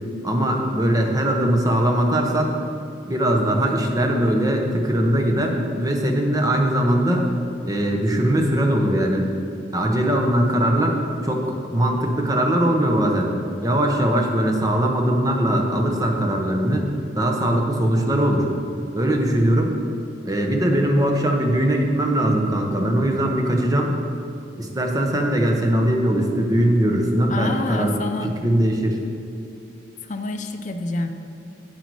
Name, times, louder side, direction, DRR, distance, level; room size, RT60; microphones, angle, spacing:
voice 1, 0.2-2.5 3.1-7.3 7.7-9.3 9.7-13.3 13.6-16.9 17.1-18.5 18.9-19.8 20.2-23.9 24.6-27.9 28.2-29.0, right 1 dB, 20° right, 2 dB, 0.9 m, -20 dB
voice 2, 27.3-28.3 30.0-31.1, left 2 dB, 40° left, 6 dB, 0.5 m, -27 dB
8.1 x 8.1 x 4.7 m, 2.7 s
head